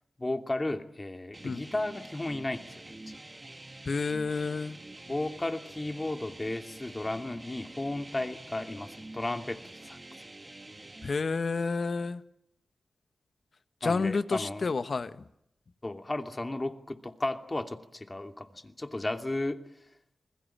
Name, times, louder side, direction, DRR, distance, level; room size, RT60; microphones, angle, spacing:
voice 1, 0.2-3.2 5.1-10.0 13.8-14.7 15.8-19.6, left 2 dB, 30° left, 6 dB, 2.7 m, -34 dB
sound 1, 1.3-11.1, right 2 dB, 30° right, 2.2 m, -47 dB
voice 2, 3.9-4.8 11.0-12.2 13.8-15.2, left 4 dB, 60° left, 11 dB, 1.5 m, -30 dB
28.5 x 20.5 x 8.8 m, 0.78 s
cardioid pair, 45°, 0 cm